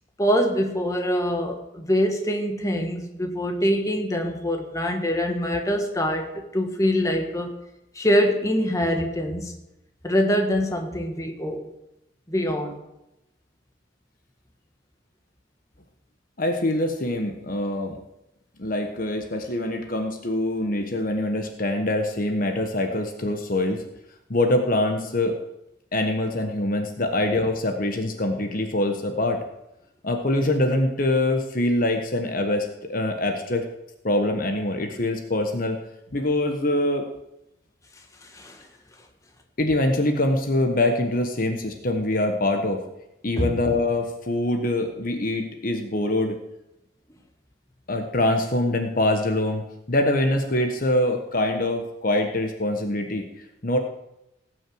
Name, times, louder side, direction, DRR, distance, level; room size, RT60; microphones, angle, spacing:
voice 1, 0.2-7.6 7.9-9.5 10.0-11.7 12.3-12.8 38.2-38.6 43.4-43.5, equal, 15° left, 3 dB, 1.5 m, -24 dB
voice 2, 16.4-18.0 18.6-23.8 24.3-25.4 25.9-29.4 30.0-33.6 34.0-35.8 36.1-37.1 39.6-42.8 43.2-46.4 47.9-53.3 53.6-53.8, left 1 dB, 45° left, 5 dB, 1.2 m, -24 dB
17.5 x 6.4 x 7.8 m, 0.88 s
head